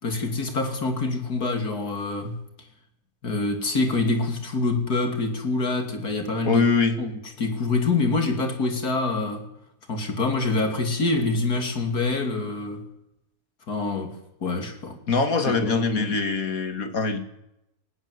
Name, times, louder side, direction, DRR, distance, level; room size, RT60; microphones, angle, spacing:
voice 1, 0.0-2.4 3.2-6.6 7.0-7.1 7.4-9.4 9.9-12.8 13.7-14.1 14.4-15.0 15.5-16.2, left 3 dB, 85° left, 3.3 m, -26 dB
voice 2, 6.4-7.0 15.1-17.3, left 4 dB, 65° left, 2.3 m, -23 dB
19.5 x 16.0 x 9.7 m
omnidirectional pair, 1.6 m